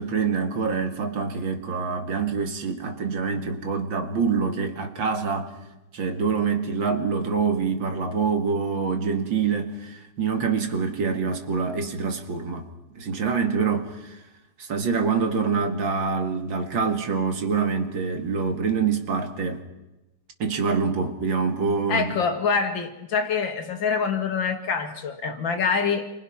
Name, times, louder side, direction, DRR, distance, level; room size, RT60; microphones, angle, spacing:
voice 1, 0.0-5.5 5.9-12.7 13.0-14.2 14.6-19.6 20.4-22.2, right 5 dB, 80° right, 2.7 m, -25 dB
voice 2, 21.9-26.1, left 5 dB, 80° left, 2.6 m, -25 dB
28.5 x 23.5 x 5.9 m
omnidirectional pair, 2.1 m